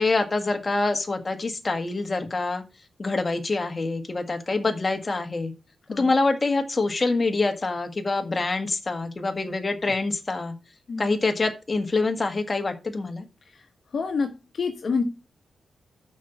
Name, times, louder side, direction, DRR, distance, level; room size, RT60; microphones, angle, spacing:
voice 1, 0.0-2.6 3.0-5.5 5.9-10.5 11.0-13.3, left 3 dB, 30° left, 5 dB, 1.6 m, -25 dB
voice 2, 10.9-11.2 13.5-13.6 13.9-15.0, left 5 dB, 55° left, 6 dB, 1.3 m, -28 dB
6.3 x 5.4 x 7.0 m, 0.29 s
cardioid pair, 90°, 0 cm